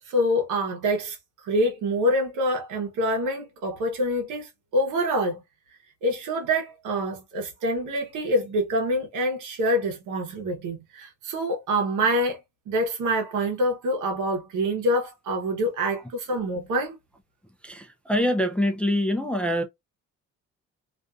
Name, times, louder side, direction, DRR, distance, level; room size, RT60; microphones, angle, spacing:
voice 1, 0.1-1.2 1.4-5.4 6.0-12.4 12.7-16.9, equal, 85° right, 0.9 m, -26 dB
voice 2, 17.6-19.6, left 1 dB, 5° left, 0.4 m, -25 dB
2.5 x 2.5 x 2.3 m
cardioid pair, 90°, 30 cm